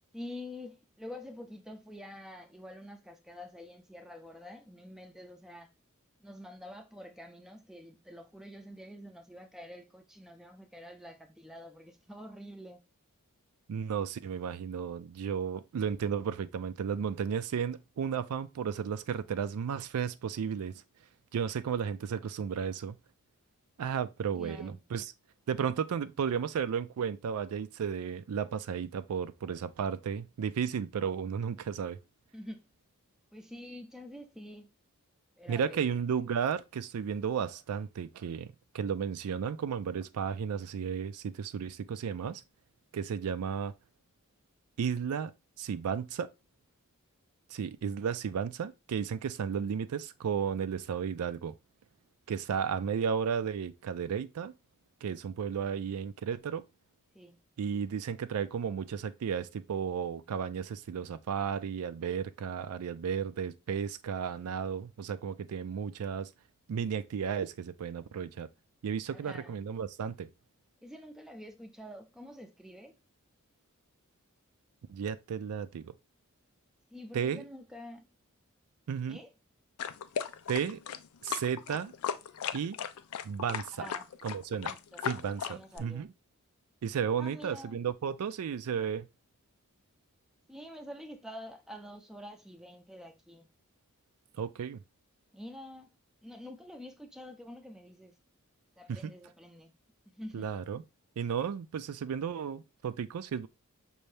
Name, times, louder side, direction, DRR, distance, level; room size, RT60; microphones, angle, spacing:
voice 1, 0.1-5.7 6.2-12.8 24.3-24.8 32.3-32.7 33.3-34.7 35.4-35.9 57.1-57.4 69.1-69.6 70.8-72.9 76.9-78.0 79.1-79.3 83.7-84.1 84.6-85.1 85.4-86.1 87.2-87.8 90.5-93.5 95.3-95.9 96.2-98.2 98.8-99.7 100.1-100.6, left 1 dB, ahead, 0.5 m, -47 dB
voice 2, 13.7-20.8 21.3-23.0 23.8-25.1 25.5-32.0 35.5-38.5 38.7-42.4 42.9-43.7 44.8-45.3 45.6-46.3 47.5-51.5 52.3-54.5 55.0-56.6 57.6-66.3 66.7-68.5 68.8-70.3 74.9-75.9 77.1-77.5 78.9-79.2 80.5-80.8 81.2-81.9 82.5-82.7 83.2-83.9 84.2-84.7 85.0-86.1 86.8-89.1 94.4-94.8 98.9-99.1 100.3-100.8 101.2-103.5, right 7 dB, 80° right, 0.4 m, -33 dB
sound 1, 79.8-85.8, left 8 dB, 80° left, 0.4 m, -37 dB
5.5 x 2.6 x 3.2 m
head